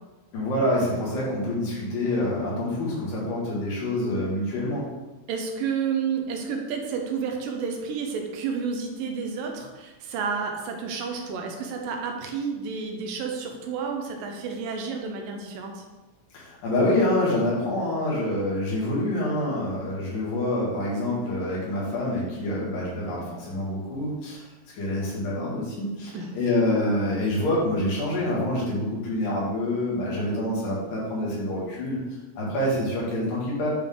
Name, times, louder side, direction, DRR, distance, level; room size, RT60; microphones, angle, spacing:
voice 1, 0.3-4.8 16.3-24.5 24.7-32.0 32.4-33.7, left 1 dB, 80° left, -6 dB, 3.5 m, -26 dB
voice 2, 5.3-15.8 26.1-26.3, right 5 dB, 85° right, 2 dB, 2.5 m, -30 dB
8.6 x 3.7 x 3.7 m, 1.2 s
omnidirectional pair, 3.8 m